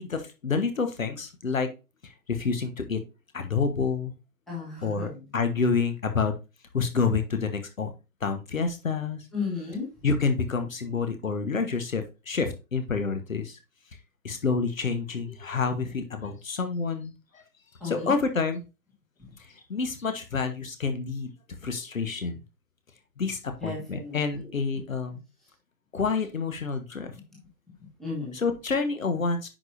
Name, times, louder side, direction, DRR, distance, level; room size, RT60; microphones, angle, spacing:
voice 1, 0.0-1.7 2.0-3.0 3.3-4.1 4.8-6.3 6.7-7.9 8.2-9.2 10.0-13.6 14.2-17.4 17.8-18.6 19.7-21.3 21.6-22.4 23.2-25.2 25.9-27.1 28.3-29.5, left 4 dB, 55° left, 8 dB, 1.4 m, -28 dB
voice 2, 4.5-5.2 9.3-9.9 17.8-18.1 23.6-24.5 27.3-27.4 28.0-28.4, left 4 dB, ahead, -6 dB, 1.4 m, -34 dB
9.4 x 5.1 x 2.7 m, 0.28 s
figure-of-eight pair, 145°, 48 cm